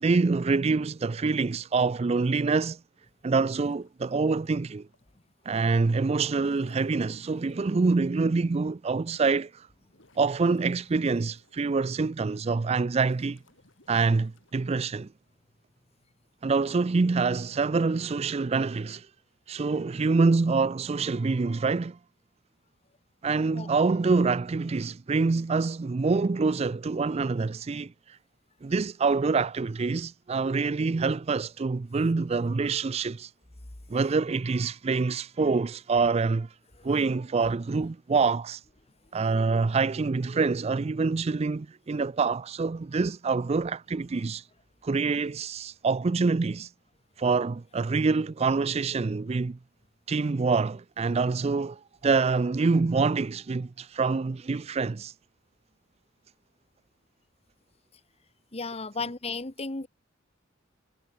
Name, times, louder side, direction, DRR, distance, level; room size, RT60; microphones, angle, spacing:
voice 1, 0.0-2.8 3.2-4.9 5.5-9.7 10.2-13.4 13.9-15.1 16.4-19.1 19.5-22.0 23.2-28.2 28.6-33.3 33.9-36.5 36.8-38.6 39.1-44.4 44.8-46.7 47.2-49.6 50.1-55.1, right 4 dB, 30° right, 0.4 m, -26 dB
sound 1, 3.3-5.1 6.2-8.3 8.9-9.0 9.5-12.0 12.4-15.1 16.3-16.6, left 2 dB, 70° left, 5.7 m, -63 dB
voice 2, 58.5-59.9, left 3 dB, 30° left, 1.4 m, -34 dB
head